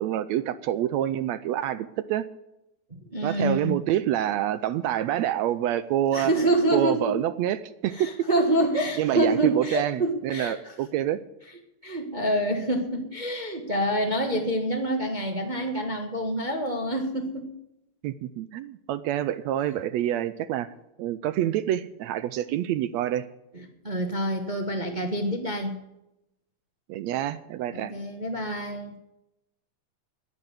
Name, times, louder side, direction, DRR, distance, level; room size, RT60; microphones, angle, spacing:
voice 1, 0.0-2.3 3.2-6.3 6.7-8.3 9.0-11.2 18.0-20.7 21.0-23.3 26.9-27.9, right 12 dB, 75° right, 14 dB, 1.7 m, -27 dB
voice 2, 3.1-3.8 6.1-7.2 7.9-10.6 11.8-17.5 23.8-25.8 27.7-28.9, right 1 dB, 50° right, 3 dB, 0.5 m, -26 dB
11.0 x 10.5 x 7.8 m, 0.87 s
omnidirectional pair, 3.4 m